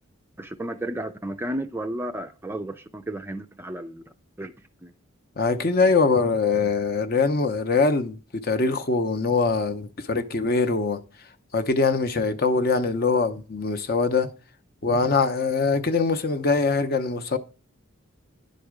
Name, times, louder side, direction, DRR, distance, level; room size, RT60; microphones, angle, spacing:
voice 1, 0.4-4.0 4.4-4.5 4.8-4.9, right 1 dB, 10° right, 0.4 m, -33 dB
voice 2, 5.4-11.0 11.5-14.3 14.8-17.4, left 4 dB, 45° left, 0.7 m, -23 dB
10.0 x 4.2 x 4.8 m
head